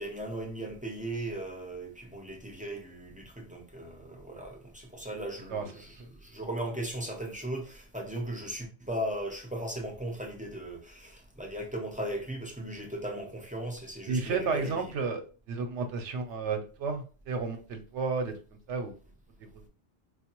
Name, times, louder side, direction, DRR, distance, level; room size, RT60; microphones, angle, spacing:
voice 1, 0.0-14.9, right 1 dB, 10° right, 0.4 m, -37 dB
voice 2, 14.1-15.2 15.5-18.3 18.7-18.9 19.4-19.5, right 4 dB, 80° right, 0.9 m, -32 dB
4.6 x 2.2 x 2.9 m
omnidirectional pair, 1.2 m